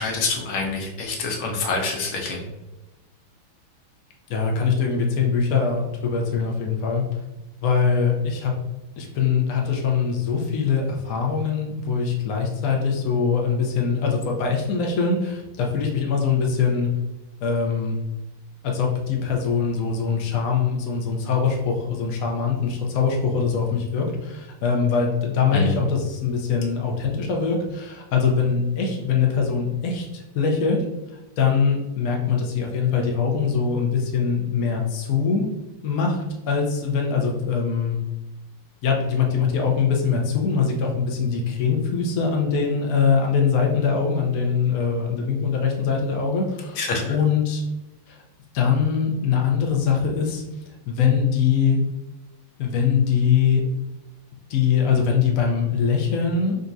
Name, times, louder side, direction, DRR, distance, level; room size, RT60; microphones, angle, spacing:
voice 1, 0.0-2.5 25.5-25.8 46.7-47.1, left 3 dB, 65° left, 0 dB, 1.1 m, -26 dB
voice 2, 4.3-7.0 7.6-8.5 9.0-16.9 17.4-18.0 18.6-30.8 31.4-35.5 35.8-38.0 38.8-46.8 47.1-47.6 48.1-48.2 48.5-50.4 50.9-51.8 52.6-53.6 54.5-56.6, left 6 dB, 85° left, 0 dB, 0.7 m, -22 dB
3.9 x 3.5 x 2.6 m, 1.0 s
omnidirectional pair, 2.4 m